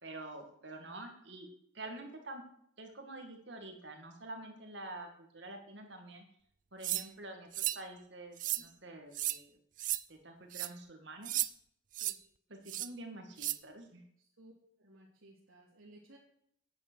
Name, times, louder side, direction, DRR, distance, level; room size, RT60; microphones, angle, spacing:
voice 1, 0.0-1.5 1.7-2.4 2.8-5.1 5.3-6.2 6.7-7.5 7.7-9.5 10.1-11.3 12.5-14.0, right 2 dB, 60° right, 4 dB, 2.2 m, -47 dB
sound 1, 6.8-7.1 7.5-7.8 8.4-8.6 9.1-9.4 9.8-10.0 10.5-10.7 11.3-11.5 11.9-12.2 12.7-12.9 13.4-13.6, right 15 dB, 40° right, 0.4 m, -34 dB
voice 2, 14.2-14.5 14.8-16.2, right 1 dB, 90° right, -5 dB, 2.8 m, -58 dB
9.5 x 8.9 x 6.4 m, 0.69 s
head